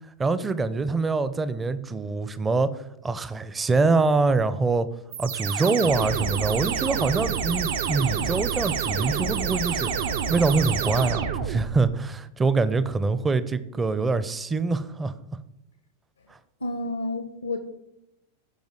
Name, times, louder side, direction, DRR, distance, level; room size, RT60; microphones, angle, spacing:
voice 1, 0.2-4.9 5.2-9.9 10.3-15.1 16.3-16.4, right 3 dB, 15° right, 14 dB, 0.6 m, -24 dB
sound 1, 5.1-11.9, right 7 dB, 60° right, 0.7 m, -28 dB
voice 2, 16.6-17.6, left 2 dB, 75° left, 9 dB, 0.8 m, -30 dB
15.5 x 5.2 x 3.8 m, 0.86 s
figure-of-eight pair, 90°, 0 cm